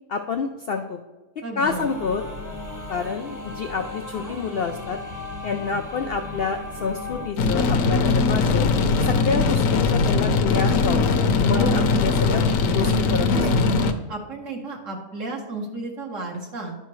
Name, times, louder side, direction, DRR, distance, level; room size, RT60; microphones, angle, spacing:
voice 1, 0.1-1.0 1.6-2.2 2.9-5.0 5.4-8.7 9.0-11.1 11.4-12.5 12.7-13.4, left 5 dB, 90° left, 5 dB, 0.5 m, -28 dB
voice 2, 1.4-1.9 11.4-11.9 13.2-13.5 14.1-16.8, right 2 dB, 60° right, 0 dB, 1.4 m, -33 dB
sound 1, 1.6-7.3, left 2 dB, 15° right, 0.9 m, -36 dB
sound 2, 7.4-13.9, left 4 dB, 65° left, 1.0 m, -20 dB
11.0 x 5.6 x 3.1 m, 1.2 s
omnidirectional pair, 1.6 m